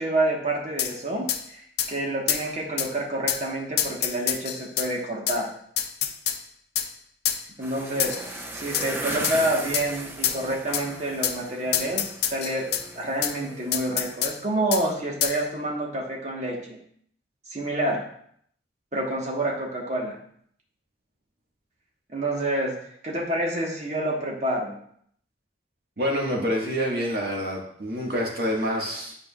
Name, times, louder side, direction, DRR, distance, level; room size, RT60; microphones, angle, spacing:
voice 1, 0.0-1.6 1.9-5.5 7.6-12.7 12.9-16.8 17.5-18.0 18.9-20.2 22.1-22.7 23.0-24.8, right 1 dB, 40° right, -1 dB, 1.3 m, -28 dB
sound 1, 0.8-0.9 1.3-1.4 1.8-1.9 2.3-2.4 2.8-2.9 3.3-3.4 3.8-4.9 5.3-5.4 5.8-6.4 6.8-6.9 7.3-7.4 8.0-8.3 8.7-8.9 9.2-9.4 9.7-9.9 10.2-10.4 10.7-10.9 11.2-11.4 11.7-12.8 13.2-13.3 13.7-14.3 14.7-14.8 15.2-15.4, left 9 dB, 70° left, 0.5 m, -26 dB
sound 2, 7.6-13.8, right 1 dB, 15° right, 0.6 m, -37 dB
voice 2, 26.0-29.2, equal, 60° right, -2 dB, 1.7 m, -27 dB
8.9 x 4.8 x 2.4 m, 0.65 s
head